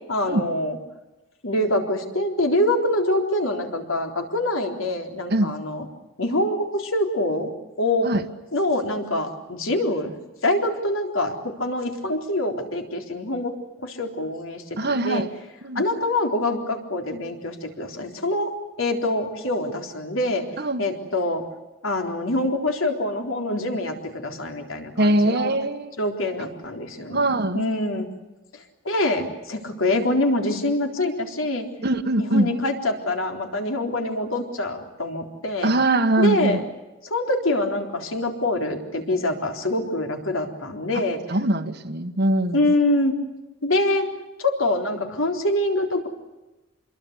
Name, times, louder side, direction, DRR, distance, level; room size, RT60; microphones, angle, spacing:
voice 1, 0.1-0.8 1.4-5.9 6.2-7.5 7.8-8.1 8.5-10.1 10.4-13.5 13.8-15.2 15.8-20.4 20.8-21.4 21.8-25.6 26.0-27.3 27.5-28.1 28.8-31.7 32.2-35.7 36.2-36.6 37.0-41.2 42.5-43.2 43.6-44.1 44.4-46.1, left 1 dB, 70° left, 4 dB, 3.8 m, -25 dB
voice 2, 14.8-15.3 15.6-15.8 20.6-20.8 25.0-25.9 27.1-27.6 31.8-32.5 35.6-36.6 41.3-42.6, right 1 dB, 50° right, 7 dB, 1.4 m, -22 dB
27.0 x 22.0 x 8.2 m, 1.1 s
head